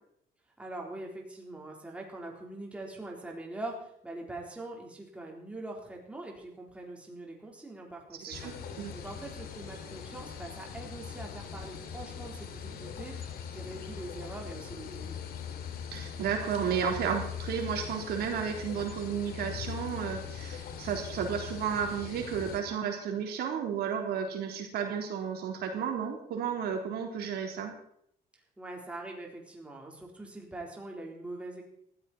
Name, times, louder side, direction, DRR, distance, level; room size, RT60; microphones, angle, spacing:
voice 1, 0.6-15.2 28.3-31.6, right 2 dB, 5° right, -1 dB, 3.8 m, -43 dB
voice 2, 8.2-8.9 15.9-27.7, right 7 dB, 65° right, 2 dB, 3.6 m, -33 dB
sound 1, 8.3-22.6, left 7 dB, 60° left, 2.4 m, -41 dB
18.5 x 14.5 x 4.3 m, 0.69 s
cardioid pair, 150°, 17 cm